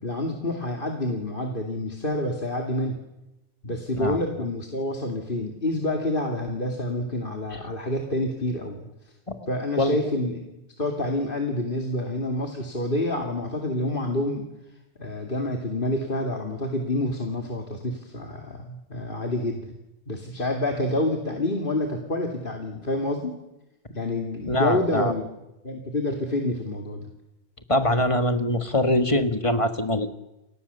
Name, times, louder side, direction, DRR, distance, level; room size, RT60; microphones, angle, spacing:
voice 1, 0.0-3.0 3.6-8.8 9.5-14.4 15.0-19.7 20.1-23.3 23.9-25.3 25.6-27.1, left 1 dB, 45° left, 2 dB, 2.7 m, -28 dB
voice 2, 24.5-25.1 27.7-30.1, left 1 dB, 25° left, 8 dB, 1.7 m, -23 dB
30.0 x 25.0 x 6.9 m, 0.96 s
omnidirectional pair, 1.2 m